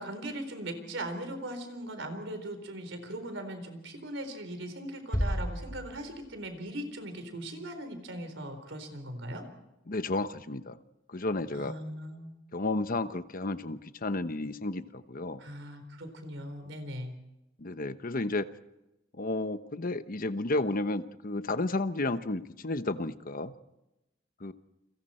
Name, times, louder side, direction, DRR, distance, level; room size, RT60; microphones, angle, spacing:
voice 1, 0.0-9.4 11.5-12.3 15.4-17.1, right 1 dB, 75° right, 7 dB, 4.1 m, -39 dB
sound 1, 5.1-6.7, equal, 20° left, 2.2 m, -33 dB
voice 2, 9.9-10.8 11.1-11.7 12.5-15.4 17.6-18.5 19.1-23.5 24.4-24.5, left 2 dB, 50° left, 11 dB, 1.0 m, -32 dB
29.5 x 23.5 x 4.4 m, 0.93 s
head